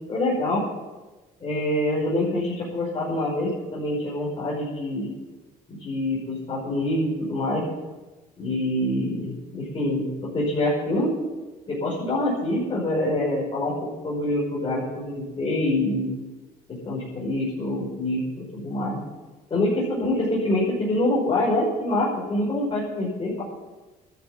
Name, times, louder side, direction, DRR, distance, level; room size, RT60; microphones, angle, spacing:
voice 1, 0.1-0.6 1.4-5.1 5.7-7.6 8.4-11.1 11.7-16.1 16.7-19.0 19.5-23.4, left 1 dB, 30° left, -6 dB, 5.9 m, -25 dB
13.5 x 9.8 x 8.8 m, 1.2 s
cardioid pair, 110°, 17 cm